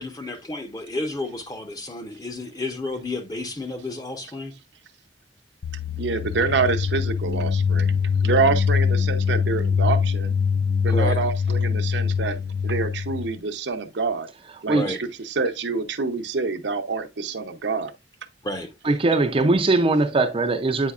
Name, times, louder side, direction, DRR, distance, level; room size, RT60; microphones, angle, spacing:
voice 1, 0.0-4.5 10.9-11.2 14.7-15.0 18.4-18.7, left 2 dB, 20° left, 0.9 m, -31 dB
sound 1, 5.6-13.4, left 6 dB, 60° left, 0.6 m, -23 dB
voice 2, 6.0-7.9 8.2-10.3 10.8-12.4 12.6-14.3 14.6-17.9, right 4 dB, 75° right, 0.8 m, -26 dB
voice 3, 18.8-20.9, right 2 dB, 30° right, 0.5 m, -20 dB
8.3 x 5.0 x 2.4 m
head